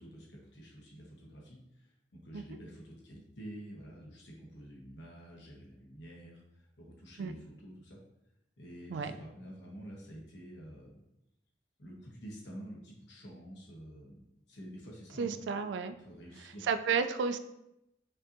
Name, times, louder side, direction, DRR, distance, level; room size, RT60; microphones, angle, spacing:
voice 1, 0.0-8.0 8.6-11.0 11.8-15.4 16.0-16.7, equal, 80° left, -2 dB, 1.0 m, -49 dB
voice 2, 15.2-15.9 16.7-17.4, right 5 dB, 85° right, 10 dB, 0.3 m, -32 dB
5.4 x 2.7 x 2.6 m, 0.85 s
head